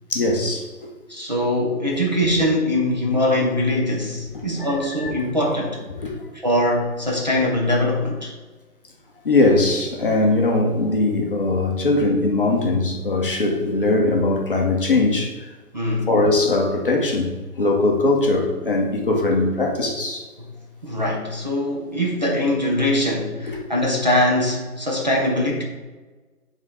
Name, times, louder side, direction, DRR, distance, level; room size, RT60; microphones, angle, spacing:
voice 1, 0.1-0.9 4.6-4.7 5.0-5.1 5.9-6.1 9.2-15.3 16.1-20.3 23.5-23.6, left 2 dB, 35° left, 1 dB, 0.8 m, -20 dB
voice 2, 1.1-5.8 6.4-8.3 15.7-16.1 20.8-25.6, left 1 dB, 30° right, -2 dB, 0.6 m, -22 dB
7.2 x 3.6 x 4.2 m, 1.3 s
hypercardioid pair, 165°, 46 cm